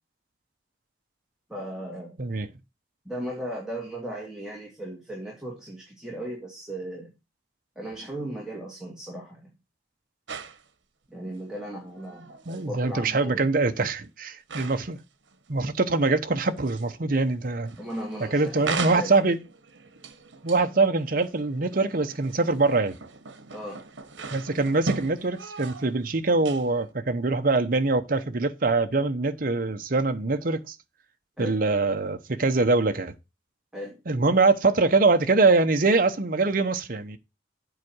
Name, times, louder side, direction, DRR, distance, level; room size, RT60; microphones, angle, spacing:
voice 1, 1.5-2.2 3.1-7.1 7.8-9.5 11.1-13.4 17.8-19.2 23.5-23.8 31.4-31.6 33.7-34.0, right 1 dB, 5° right, 2.2 m, -37 dB
sound 1, 10.3-10.7 11.9-12.6 13.3-13.4 14.5-15.0 15.3-15.7 16.0-17.0 17.3-26.0 26.3-26.9, right 4 dB, 85° right, 1.1 m, -38 dB
voice 2, 12.5-15.0 15.5-17.8 18.3-19.4 20.4-23.0 24.3-30.7 31.4-33.1 34.1-37.2, right 3 dB, 50° right, 0.9 m, -23 dB
8.2 x 4.8 x 6.1 m
head